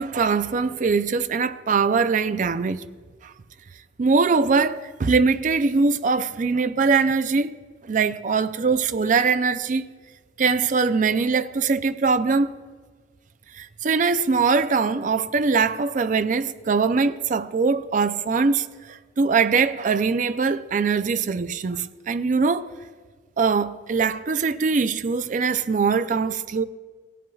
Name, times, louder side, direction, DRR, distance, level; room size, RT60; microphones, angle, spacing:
voice 1, 0.0-2.8 3.2-3.3 4.0-7.5 7.9-9.9 10.4-12.5 13.5-22.7 23.4-26.6, right 4 dB, 45° right, 0.4 m, -22 dB
18.5 x 11.0 x 2.3 m
head